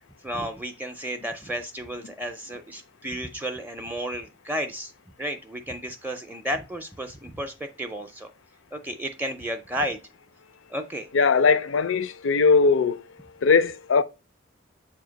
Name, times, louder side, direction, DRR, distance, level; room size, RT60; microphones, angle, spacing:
voice 1, 0.2-4.9 5.2-8.3 8.7-10.0 10.7-11.1, equal, 10° right, 0.5 m, -32 dB
voice 2, 11.1-13.0 13.4-14.0, left 5 dB, 75° left, 0.5 m, -20 dB
7.2 x 2.8 x 5.1 m
head